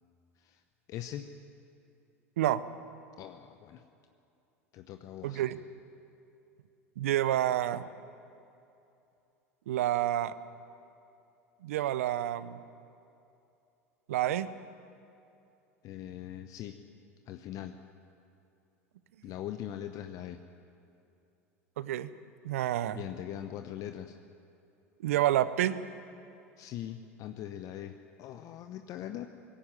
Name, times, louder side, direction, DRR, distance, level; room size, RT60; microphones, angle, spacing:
voice 1, 0.9-1.3 3.2-3.8 4.7-5.4 15.8-16.8 17.3-17.8 19.2-20.4 22.9-24.2 26.6-29.3, left 11 dB, 50° left, 7 dB, 0.9 m, -41 dB
voice 2, 5.2-5.6 7.0-7.9 9.7-10.3 11.6-12.6 14.1-14.5 21.8-22.1 22.4-23.0 25.0-25.8, right 13 dB, 75° right, 16 dB, 0.8 m, -28 dB
18.5 x 15.5 x 8.9 m, 2.7 s
hypercardioid pair, 85°, 8 cm